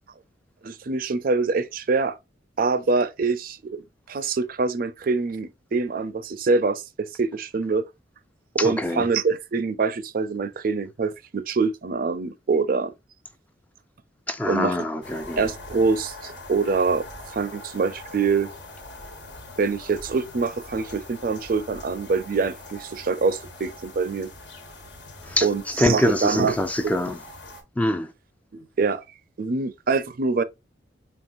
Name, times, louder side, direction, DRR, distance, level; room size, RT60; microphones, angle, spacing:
voice 1, 0.6-2.2 2.6-3.8 4.1-7.8 8.6-12.9 14.5-14.8 15.1-17.0 17.3-18.5 19.6-24.3 25.4-26.6 28.5-29.0 29.4-30.4, right 4 dB, 50° right, 0.5 m, -25 dB
voice 2, 8.6-9.1 14.3-15.5 25.3-25.5 25.8-27.2 27.8-28.1, left 1 dB, 10° left, 0.3 m, -24 dB
sound 1, 15.0-27.6, left 2 dB, 80° left, 1.5 m, -42 dB
5.3 x 2.9 x 2.5 m
head